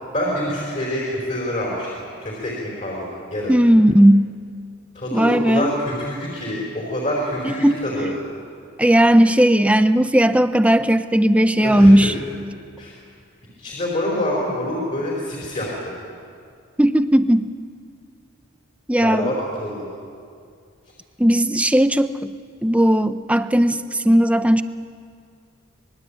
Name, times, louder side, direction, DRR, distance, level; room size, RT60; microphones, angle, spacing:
voice 1, 0.1-1.9 2.2-3.5 4.9-8.1 11.6-12.2 12.8-12.9 13.6-15.9 19.0-19.9, left 1 dB, 35° left, -3 dB, 4.8 m, -26 dB
voice 2, 3.5-4.3 5.1-5.7 7.6-8.2 8.8-12.1 16.8-17.5 18.9-19.3 21.2-22.3 22.6-24.6, equal, 5° right, 11 dB, 0.5 m, -16 dB
25.5 x 21.0 x 8.7 m, 2.3 s
head